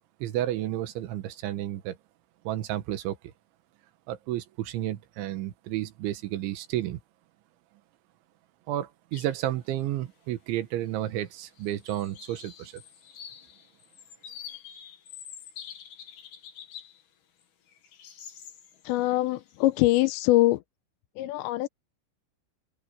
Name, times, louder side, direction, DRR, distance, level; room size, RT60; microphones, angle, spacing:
voice 1, 0.2-2.0 2.5-3.2 4.1-7.0 8.7-12.8, right 13 dB, 90° right, 3.7 m, -31 dB
sound 1, 9.1-9.4 9.8-9.9 10.9-11.3 11.5-17.0 17.4-20.1, left 9 dB, 60° left, 4.0 m, -47 dB
voice 2, 18.8-20.6 21.2-21.7, left 17 dB, 85° left, 2.9 m, -23 dB
open air
omnidirectional pair, 5.2 m